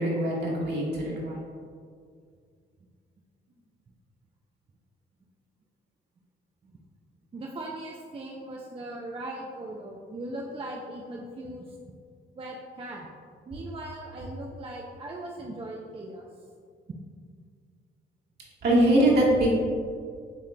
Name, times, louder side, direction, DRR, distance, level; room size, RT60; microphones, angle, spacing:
voice 1, 0.0-1.4 18.6-19.5, right 1 dB, 55° right, -5 dB, 1.5 m, -22 dB
voice 2, 7.3-12.0 12.3-13.1 13.5-16.3, right 1 dB, 30° right, -1 dB, 0.4 m, -39 dB
7.5 x 3.0 x 2.2 m, 2.1 s
cardioid pair, 90°, 20 cm